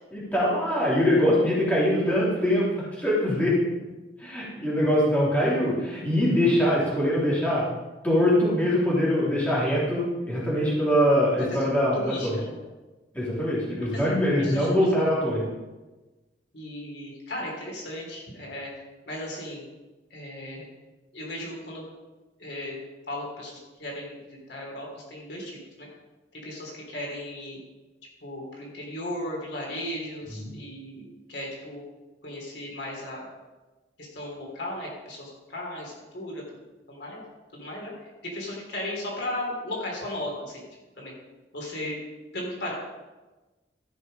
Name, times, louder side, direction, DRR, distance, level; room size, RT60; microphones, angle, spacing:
voice 1, 0.1-3.5 4.2-7.6 8.0-12.4 13.1-15.4 30.3-30.5, equal, 10° left, -7 dB, 3.3 m, -23 dB
voice 2, 11.5-12.6 13.9-14.9 16.5-18.7 19.1-19.6 20.1-20.7 21.1-21.8 22.4-22.8 23.1-25.9 26.3-27.6 28.2-31.8 32.2-33.2 34.0-36.6 36.9-37.2 37.5-37.9 38.2-40.7 41.0-41.1 41.5-42.0 42.3-42.7, left 1 dB, 70° left, -2 dB, 3.2 m, -36 dB
14.0 x 6.1 x 5.2 m, 1.2 s
head